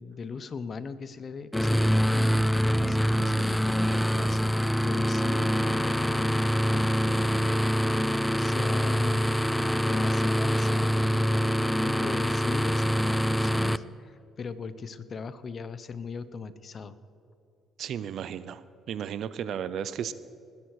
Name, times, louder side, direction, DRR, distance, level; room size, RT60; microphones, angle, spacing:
voice 1, 0.0-6.4 6.7-7.5 8.4-9.4 9.8-17.0, left 5 dB, 40° left, 15 dB, 0.8 m, -39 dB
sound 1, 1.5-13.8, equal, 5° left, 0.4 m, -25 dB
voice 2, 17.8-18.6 18.9-20.1, right 9 dB, 60° right, 15 dB, 0.6 m, -34 dB
20.0 x 10.5 x 4.8 m, 2.7 s
cardioid pair, 100°, 0 cm